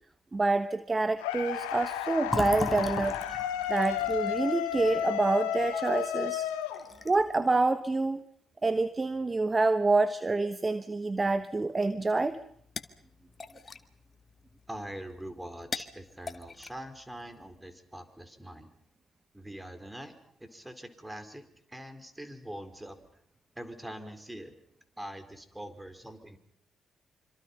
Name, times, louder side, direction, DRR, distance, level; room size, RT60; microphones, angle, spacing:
voice 1, 0.3-3.2 3.7-6.5 7.0-8.2 8.6-12.4, right 3 dB, 30° right, 12 dB, 1.2 m, -27 dB
sound 1, 1.2-7.3, left 11 dB, 85° left, 1.7 m, -33 dB
Fill (with liquid), 2.3-5.9 6.3-6.4 6.7-7.3, left 2 dB, 20° left, 3.9 m, -37 dB
sound 2, 12.3-17.6, left 4 dB, 40° left, 1.8 m, -45 dB
voice 2, 14.7-18.7 19.3-23.1 23.5-24.5 25.0-26.4, right 1 dB, 10° right, 9 dB, 4.6 m, -43 dB
26.5 x 26.0 x 5.6 m, 0.65 s
hypercardioid pair, 45°, 0 cm